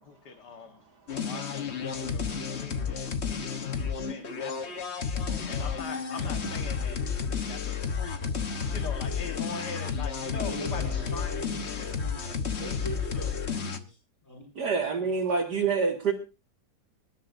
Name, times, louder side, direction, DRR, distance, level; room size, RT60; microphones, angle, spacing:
voice 1, 0.0-0.8 1.2-4.8 5.5-7.0 7.5-8.3 8.7-11.5, left 6 dB, 70° left, 6 dB, 2.1 m, -42 dB
sound 1, 1.1-13.8, left 6 dB, 40° left, 1.3 m, -32 dB
voice 2, 10.3-14.0 14.2-14.5, left 1 dB, 10° left, -1 dB, 6.4 m, -42 dB
voice 3, 14.6-16.1, right 5 dB, 65° right, -2 dB, 2.5 m, -26 dB
25.5 x 12.0 x 2.6 m, 0.30 s
omnidirectional pair, 1.9 m